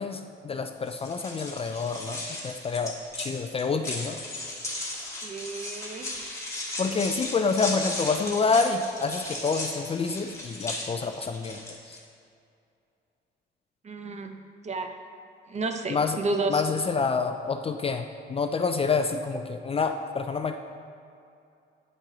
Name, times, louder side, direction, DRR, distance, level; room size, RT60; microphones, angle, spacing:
voice 1, 0.0-4.2 6.8-11.6 11.9-12.0 15.9-16.2 16.5-20.6, left 4 dB, 30° left, 7 dB, 0.4 m, -28 dB
sound 1, 0.9-12.0, left 2 dB, 15° left, 1.5 m, -36 dB
voice 2, 5.2-6.1 13.8-14.4 14.6-14.9 15.5-16.6, right 3 dB, 35° right, 5 dB, 0.7 m, -31 dB
9.0 x 4.6 x 3.9 m, 2.5 s
cardioid pair, 90°, 20 cm